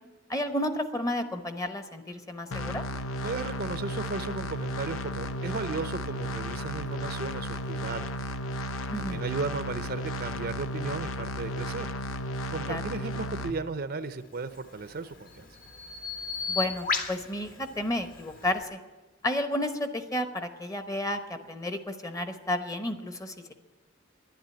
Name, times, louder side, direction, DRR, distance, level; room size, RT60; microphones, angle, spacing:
voice 1, 0.3-2.8 8.9-9.2 12.6-12.8 16.5-18.8 19.2-23.5, left 1 dB, 15° left, 8 dB, 1.0 m, -32 dB
sound 1, 2.5-13.5, equal, 85° left, 0.8 m, -34 dB
voice 2, 3.2-8.1 9.0-11.9 12.5-15.4, right 3 dB, 50° right, 11 dB, 0.6 m, -35 dB
Bird vocalization bird call bird song, 14.4-18.6, left 4 dB, 45° left, 1.3 m, -36 dB
12.0 x 10.5 x 9.5 m, 1.3 s
head